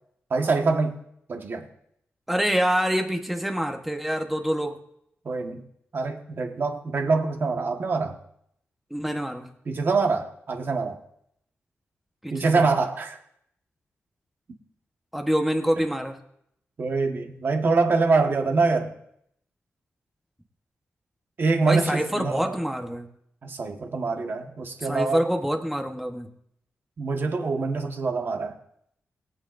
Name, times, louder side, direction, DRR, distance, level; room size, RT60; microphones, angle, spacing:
voice 1, 0.3-1.0 1.3-1.7 5.2-5.6 5.9-8.2 9.7-11.0 12.3-13.2 15.8-15.9 16.8-18.9 21.4-22.6 23.4-25.2 27.0-28.6, right 4 dB, 50° right, 3 dB, 1.4 m, -25 dB
voice 2, 2.3-4.8 8.9-9.5 12.2-12.6 15.1-16.2 21.6-23.1 24.8-26.3, equal, 5° right, 4 dB, 1.1 m, -26 dB
22.0 x 9.0 x 2.6 m, 0.73 s
wide cardioid pair, 155°, 5 cm